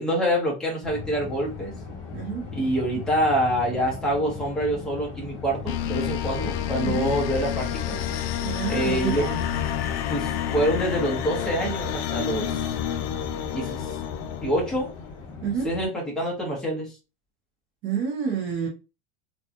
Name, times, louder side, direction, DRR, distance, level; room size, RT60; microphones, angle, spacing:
voice 1, 0.0-1.7 2.5-8.0 8.7-9.3 10.1-12.7 13.5-13.9 14.4-14.9 15.6-16.9, equal, ahead, 0.7 m, -26 dB
Airplane thrust up, 0.8-15.9, left 4 dB, 35° left, 1.1 m, -39 dB
voice 2, 2.1-2.5 6.8-7.1 8.4-9.4 15.4-15.7 17.8-18.7, right 7 dB, 35° right, 0.5 m, -28 dB
sound 1, 5.7-15.1, left 10 dB, 55° left, 0.4 m, -29 dB
2.8 x 2.2 x 2.4 m
supercardioid pair, 160°, 35 cm